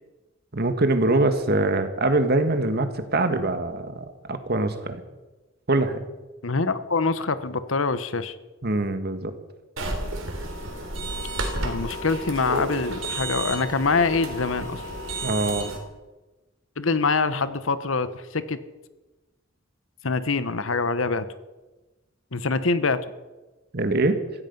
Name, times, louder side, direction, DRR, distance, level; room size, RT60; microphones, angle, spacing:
voice 1, 0.5-5.0 5.7-6.0 8.6-9.3 15.2-15.7 23.7-24.2, right 2 dB, 55° right, 8 dB, 1.7 m, -23 dB
voice 2, 6.4-8.3 11.6-14.8 16.8-18.6 20.0-21.3 22.3-23.0, left 4 dB, 90° left, 13 dB, 1.1 m, -25 dB
sound 1, 9.8-15.8, right 1 dB, 90° right, 3.5 m, -31 dB
17.0 x 15.5 x 5.5 m, 1.1 s
head